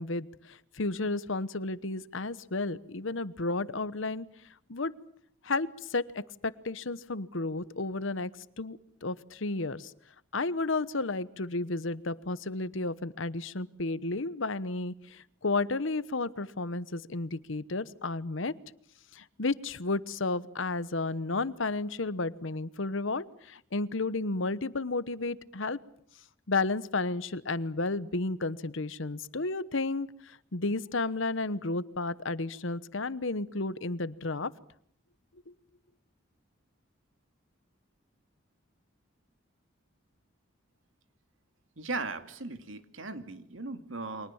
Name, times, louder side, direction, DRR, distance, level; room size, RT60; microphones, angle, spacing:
voice 1, 0.0-4.3 4.7-4.9 5.4-8.3 8.6-9.9 10.3-18.5 19.1-25.8 26.5-34.5, left 3 dB, 70° left, 16 dB, 1.1 m, -32 dB
voice 2, 41.8-44.3, right 3 dB, 75° right, 9 dB, 2.4 m, -38 dB
30.0 x 24.0 x 7.2 m, 0.67 s
head